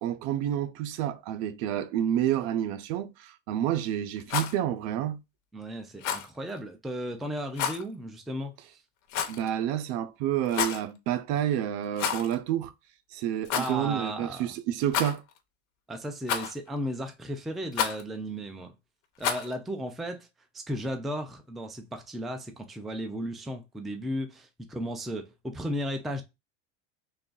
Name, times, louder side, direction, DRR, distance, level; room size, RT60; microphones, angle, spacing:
voice 1, 0.0-5.2 9.3-12.7 13.1-15.2, right 11 dB, 65° right, 0.6 m, -29 dB
Rattle, 4.2-4.6 6.0-6.3 7.5-7.8 9.1-9.5 10.4-10.8 11.9-12.4 12.6-12.7 13.4-13.7 14.9-15.4 16.3-16.7 17.7-18.0 19.2-19.5, left 8 dB, 50° left, 0.8 m, -30 dB
voice 2, 5.5-8.6 13.5-14.5 15.9-18.7 19.2-20.3 20.5-26.2, equal, ahead, 0.3 m, -35 dB
3.3 x 2.4 x 3.8 m
supercardioid pair, 125°, 36 cm